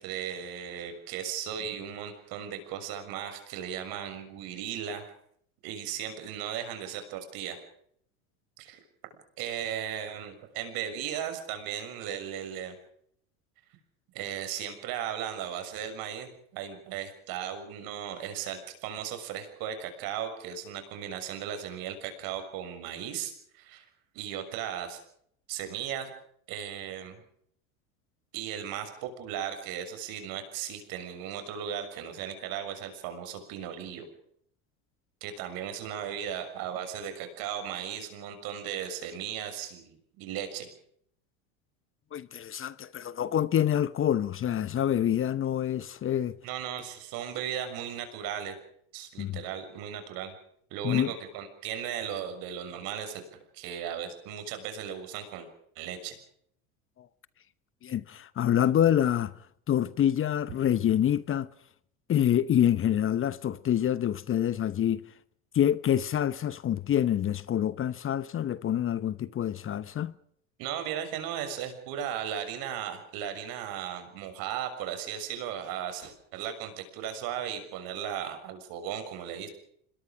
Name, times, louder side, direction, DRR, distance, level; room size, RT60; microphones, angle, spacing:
voice 1, 0.0-5.1 5.6-7.6 8.6-8.8 9.4-12.7 14.1-23.8 24.1-25.0 25.5-26.1 26.5-27.2 28.3-34.1 35.2-40.7 46.4-48.5 48.9-50.3 50.7-53.2 53.5-55.5 55.7-56.2 70.6-79.5, right 9 dB, 60° right, 6.6 m, -36 dB
voice 2, 42.1-46.4 49.2-49.4 50.8-51.1 57.0-57.1 57.8-59.3 59.7-61.5 62.1-65.0 65.5-70.1, left 10 dB, 30° left, 1.0 m, -26 dB
26.5 x 22.0 x 5.1 m
hypercardioid pair, 90°, 40 cm